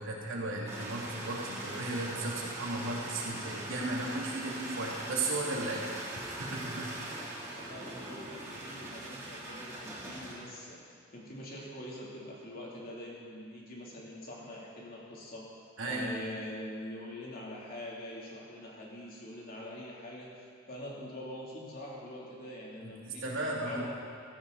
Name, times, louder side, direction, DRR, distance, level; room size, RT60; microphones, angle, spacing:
voice 1, 0.0-7.1 15.8-16.1 22.8-23.9, right 2 dB, 75° right, -3 dB, 2.7 m, -35 dB
sound 1, 0.7-10.4, right 1 dB, 15° right, 3.3 m, -41 dB
voice 2, 7.1-15.4 15.8-20.3 20.7-23.3 23.6-23.9, left 1 dB, 45° left, -5 dB, 3.2 m, -44 dB
16.0 x 14.0 x 4.1 m, 2.2 s
head